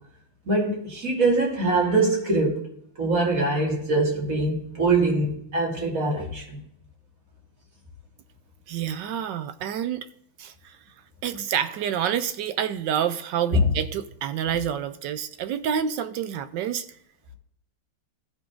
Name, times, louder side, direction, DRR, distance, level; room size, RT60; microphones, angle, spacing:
voice 1, 0.5-2.6 3.0-6.6 13.5-13.6, right 2 dB, 40° right, 2.8 m, -23 dB
voice 2, 8.7-10.1 10.4-10.8 11.2-16.9, right 9 dB, 75° right, 1.0 m, -28 dB
15.5 x 5.4 x 3.7 m
omnidirectional pair, 2.4 m